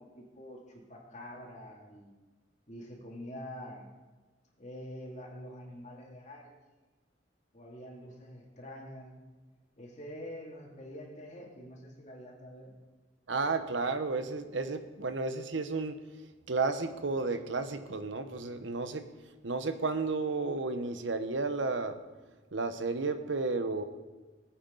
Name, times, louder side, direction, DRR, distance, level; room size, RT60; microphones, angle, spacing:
voice 1, 0.0-2.1 2.7-3.9 4.6-6.5 7.5-9.2 9.8-12.7, equal, 40° left, -1 dB, 2.6 m, -46 dB
voice 2, 13.3-16.0 16.5-19.0 19.4-22.0 22.5-23.8, right 3 dB, 90° right, 9 dB, 0.9 m, -32 dB
19.5 x 8.7 x 3.9 m, 1.3 s
head